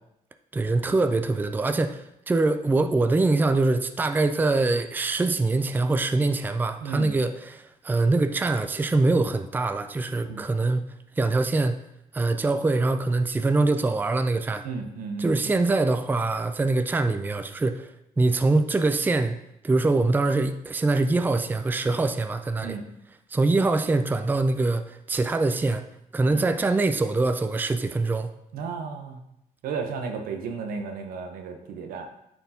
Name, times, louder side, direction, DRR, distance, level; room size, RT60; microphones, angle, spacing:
voice 1, 0.5-10.8 11.2-11.7 12.1-14.7 15.2-17.9 18.2-19.4 19.6-22.8 23.3-25.8 26.1-28.3, right 3 dB, 15° right, 9 dB, 0.4 m, -24 dB
voice 2, 6.8-7.1 10.2-10.4 14.6-15.6 22.6-22.8 26.2-26.4 28.5-29.2 29.6-32.1, right 5 dB, 85° right, 5 dB, 0.9 m, -33 dB
9.0 x 4.4 x 2.8 m, 0.81 s
cardioid pair, 95°, 14 cm